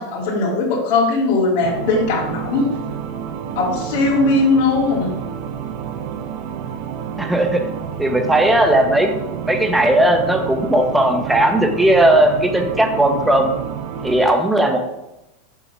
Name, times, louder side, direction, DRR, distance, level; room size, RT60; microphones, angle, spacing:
voice 1, 0.0-2.7 3.5-5.1, left 3 dB, 55° left, -4 dB, 2.5 m, -19 dB
sound 1, 1.6-14.3, right 8 dB, 50° right, 0.7 m, -29 dB
voice 2, 7.2-7.6 8.0-9.1 9.4-13.5 14.0-14.8, right 1 dB, 5° right, 4 dB, 0.8 m, -16 dB
7.1 x 3.9 x 6.1 m, 0.91 s
supercardioid pair, 155°, 0 cm